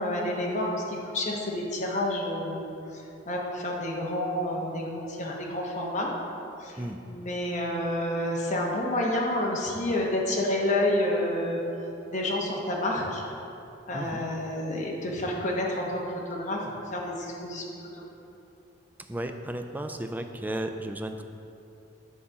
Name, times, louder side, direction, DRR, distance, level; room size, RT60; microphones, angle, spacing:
voice 1, 0.0-2.6 3.3-6.1 6.6-6.8 7.1-11.6 12.1-13.2 13.9-16.6 16.9-18.0, left 1 dB, 40° left, -2 dB, 1.1 m, -29 dB
voice 2, 13.9-14.2 19.1-21.2, right 1 dB, 10° right, 6 dB, 0.3 m, -34 dB
7.5 x 4.1 x 5.7 m, 2.8 s
head